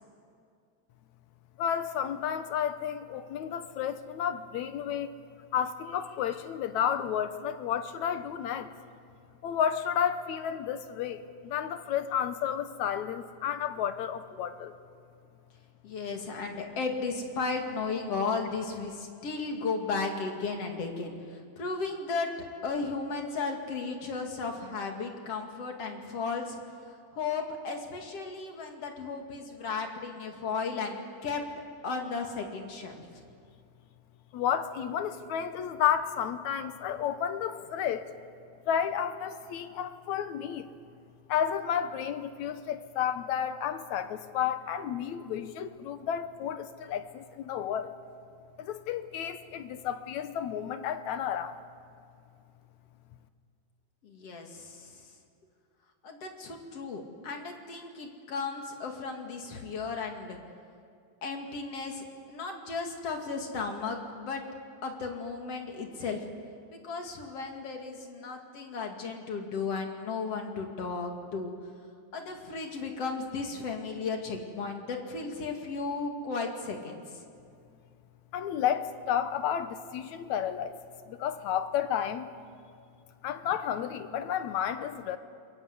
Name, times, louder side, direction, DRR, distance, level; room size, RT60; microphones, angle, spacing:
voice 1, 1.6-5.1 5.5-8.7 9.4-14.7 34.3-38.1 38.7-40.7 41.3-48.0 48.6-51.6 78.3-80.8 81.1-82.3 83.2-85.2, left 9 dB, 80° left, 10 dB, 2.4 m, -31 dB
voice 2, 15.8-26.6 26.8-31.4 31.8-33.1 54.0-55.0 56.0-60.4 61.2-64.4 64.8-66.3 66.7-71.5 72.1-77.0, left 4 dB, 55° left, 3 dB, 3.2 m, -35 dB
28.0 x 22.5 x 8.2 m, 2.3 s
omnidirectional pair, 3.3 m